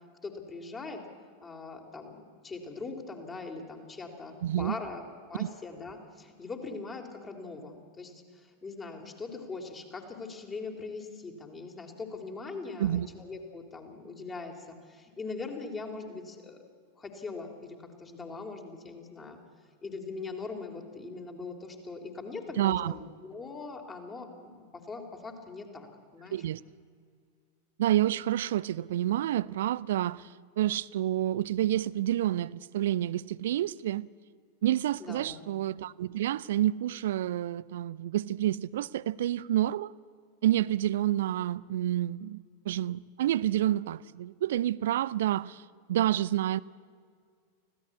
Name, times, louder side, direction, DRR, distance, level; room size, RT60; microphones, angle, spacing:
voice 1, 0.2-1.0 1.4-5.0 5.3-16.6 17.0-19.4 19.8-26.4 35.0-35.4, left 4 dB, 20° left, 3.4 m, -41 dB
voice 2, 4.4-4.8 5.4-5.5 12.8-13.1 22.6-22.9 26.3-26.6 27.8-30.3 30.6-34.1 34.6-39.9 40.4-45.6 45.9-46.6, right 13 dB, 60° right, 0.5 m, -29 dB
25.0 x 16.5 x 8.4 m
figure-of-eight pair, 90°, 0 cm